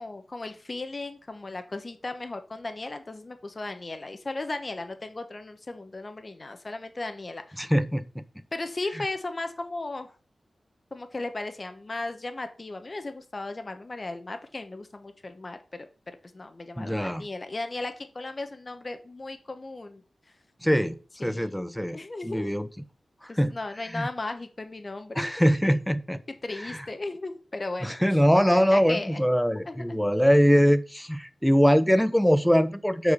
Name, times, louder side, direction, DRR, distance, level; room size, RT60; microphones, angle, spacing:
voice 1, 0.0-7.6 8.5-10.1 10.9-15.9 16.3-20.0 21.2-21.5 21.9-22.5 23.3-25.3 26.4-28.0 28.5-29.2 29.7-29.8, left 2 dB, 35° left, 8 dB, 1.1 m, -36 dB
voice 2, 7.6-8.2 16.8-17.2 20.6-20.9 21.2-22.0 22.2-22.7 23.4-23.5 23.9-24.1 25.1-26.2 26.6-26.8 27.8-33.1, equal, 5° left, 13 dB, 0.6 m, -22 dB
6.9 x 4.9 x 6.2 m, 0.37 s
wide cardioid pair, 100°, 0 cm